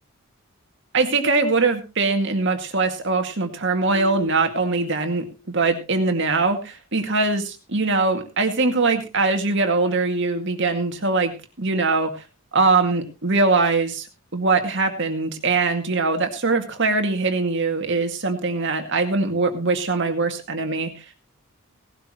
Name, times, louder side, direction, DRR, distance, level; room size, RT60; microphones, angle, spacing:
voice 1, 0.9-11.3 11.6-12.1 12.5-14.1 14.3-21.0, right 3 dB, 55° right, 6 dB, 2.1 m, -22 dB
Marimba xylophone, 3.9-5.6, equal, 30° right, 3.9 m, -39 dB
18.0 x 12.0 x 3.0 m, 0.29 s
head